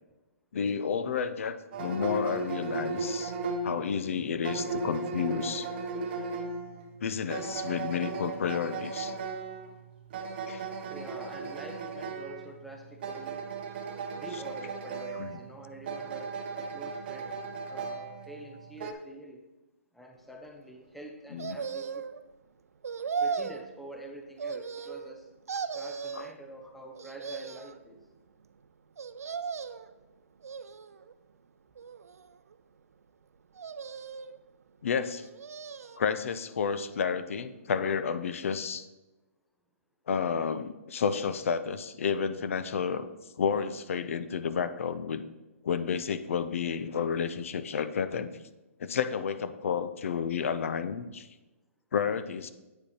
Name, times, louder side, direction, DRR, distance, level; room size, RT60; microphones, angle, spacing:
voice 1, 0.5-3.3 3.6-5.7 7.0-9.1 10.5-10.6 15.2-15.4 21.3-21.6 26.2-26.3 34.8-35.3 36.0-38.9 40.1-43.1 43.4-45.2 45.6-48.3 48.8-51.3 51.9-52.5, left 6 dB, 65° left, 12 dB, 0.6 m, -31 dB
sound 1, 1.7-18.9, right 4 dB, 40° right, 0.8 m, -37 dB
voice 2, 10.9-13.4 14.1-17.4 17.7-19.5 19.9-22.1 23.2-25.3 25.7-28.0, right 1 dB, ahead, 2 dB, 0.6 m, -46 dB
sound 2, 21.4-22.2 22.8-23.7 24.4-25.2 25.5-26.3 27.0-27.8 29.0-29.9 30.4-31.1 31.8-32.5 33.6-34.4 35.1-36.0 36.4-36.5, right 5 dB, 90° right, 0.5 m, -37 dB
8.4 x 5.4 x 4.3 m, 1.1 s
hypercardioid pair, 155°, 8 cm